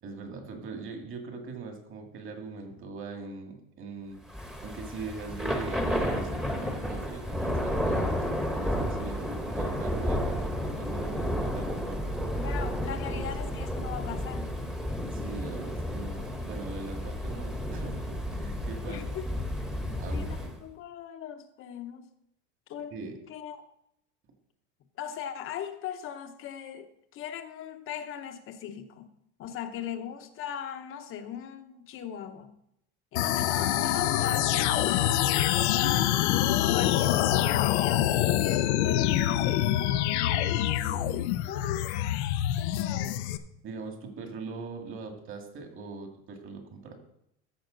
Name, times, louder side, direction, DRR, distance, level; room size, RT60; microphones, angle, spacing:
voice 1, 0.0-4.2 4.6-12.0 13.0-13.4 15.1-19.2 20.0-20.5 22.9-23.2 40.7-41.2 42.8-42.9 43.6-46.9, right 4 dB, 40° right, 4 dB, 2.0 m, -41 dB
Thunder / Rain, 4.3-20.6, equal, ahead, 1.1 m, -32 dB
voice 2, 12.4-14.5 18.9-19.2 19.6-19.7 20.1-22.1 22.7-22.9 23.3-23.7 25.0-29.1 29.4-32.6 33.1-35.4 35.6-36.2 36.7-39.9 41.5-41.9 42.5-43.2, left 9 dB, 40° left, 8 dB, 0.9 m, -39 dB
sound 1, 33.1-43.4, left 12 dB, 80° left, 0.7 m, -25 dB
14.0 x 6.0 x 3.9 m, 0.77 s
supercardioid pair, 135°, 33 cm